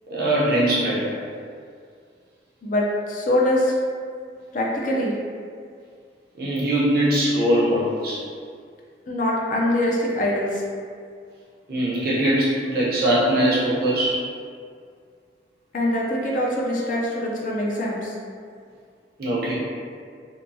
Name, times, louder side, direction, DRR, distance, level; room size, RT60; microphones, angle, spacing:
voice 1, 0.1-1.1 6.4-8.2 11.7-14.3 19.2-19.5, right 1 dB, 60° right, -7 dB, 0.7 m, -21 dB
voice 2, 2.6-3.7 4.5-5.1 9.1-10.6 15.7-18.1, left 1 dB, 45° left, -3 dB, 0.4 m, -23 dB
2.8 x 2.2 x 2.6 m, 2.2 s
head